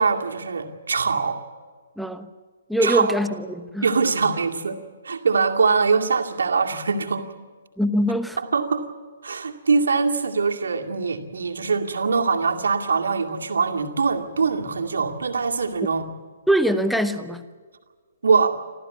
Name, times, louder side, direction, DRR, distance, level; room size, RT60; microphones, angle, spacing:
voice 1, 0.0-1.4 2.8-3.1 3.8-7.3 8.5-8.9 9.2-16.1 18.2-18.6, right 5 dB, 65° right, 2 dB, 2.3 m, -23 dB
voice 2, 2.0-2.3 2.7-3.9 7.8-8.4 16.5-17.4, right 1 dB, ahead, 11 dB, 1.1 m, -23 dB
26.0 x 15.0 x 9.5 m, 1.5 s
figure-of-eight pair, 130°, 0 cm